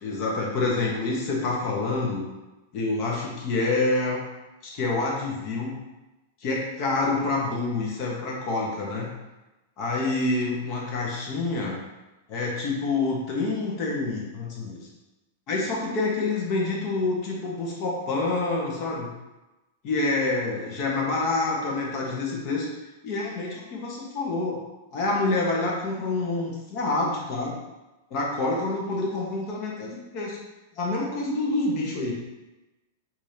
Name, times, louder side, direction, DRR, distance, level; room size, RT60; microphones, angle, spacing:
voice 1, 0.0-2.2 2.7-4.2 4.6-5.8 6.4-9.1 9.8-11.8 12.3-14.8 15.5-19.1 19.8-22.7 23.0-24.6 24.9-27.6 28.1-30.4 30.8-32.1, left 3 dB, 45° left, -3 dB, 1.3 m, -27 dB
4.7 x 2.9 x 2.8 m, 1.1 s
hypercardioid pair, 120°, 0 cm